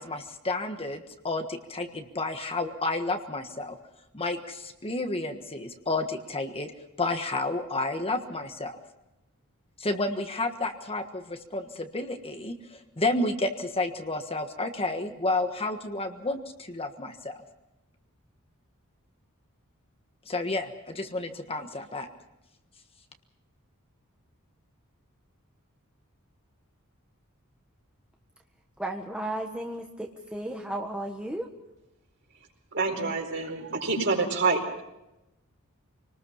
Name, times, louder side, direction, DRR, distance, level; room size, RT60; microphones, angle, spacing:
voice 1, 0.0-3.8 4.1-6.7 7.0-8.8 9.8-17.3 20.3-22.1, left 2 dB, 25° left, 6 dB, 1.5 m, -31 dB
voice 2, 28.8-31.5, right 1 dB, 5° right, 1 dB, 1.4 m, -34 dB
voice 3, 32.7-34.8, right 4 dB, 55° right, 2 dB, 4.6 m, -27 dB
26.0 x 19.5 x 5.7 m, 0.93 s
head